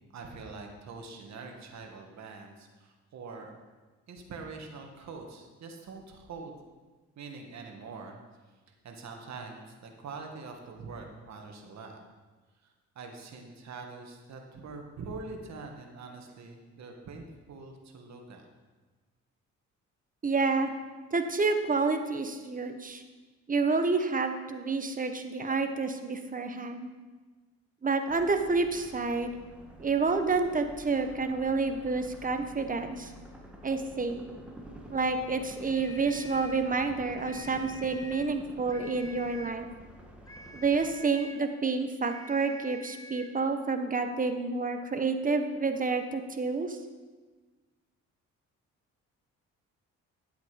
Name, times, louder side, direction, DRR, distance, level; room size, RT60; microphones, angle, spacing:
voice 1, 0.1-3.5 4.1-6.6 7.2-8.2 8.8-12.0 12.6-18.4, right 4 dB, 65° right, 2 dB, 1.9 m, -44 dB
voice 2, 20.2-20.7 21.1-23.0 23.5-26.9 27.8-29.3 29.8-33.1 33.6-34.2 34.9-39.7 40.5-46.8, right 4 dB, 25° right, 7 dB, 1.1 m, -29 dB
sound 1, 28.1-40.9, equal, 5° right, 1.9 m, -49 dB
sound 2, 35.6-36.7 37.2-38.4 38.7-39.7 40.3-41.5 42.0-43.4, equal, 10° left, 0.9 m, -47 dB
11.0 x 8.0 x 5.2 m, 1.3 s
cardioid pair, 90°, 30 cm